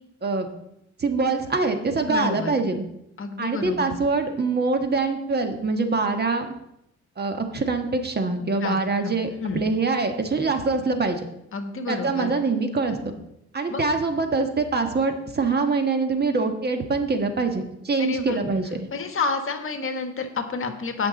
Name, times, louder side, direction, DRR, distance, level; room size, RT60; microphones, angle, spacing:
voice 1, 1.0-2.8 3.4-6.5 7.2-11.2 11.9-13.1 13.5-18.7, right 3 dB, 35° right, 6 dB, 1.4 m, -24 dB
voice 2, 2.0-2.5 3.2-3.9 8.4-9.1 9.4-9.6 11.5-12.3 13.7-13.8 18.0-18.4 18.9-21.1, left 4 dB, 45° left, 6 dB, 1.4 m, -29 dB
17.0 x 6.0 x 4.0 m, 0.80 s
cardioid pair, 90°, 30 cm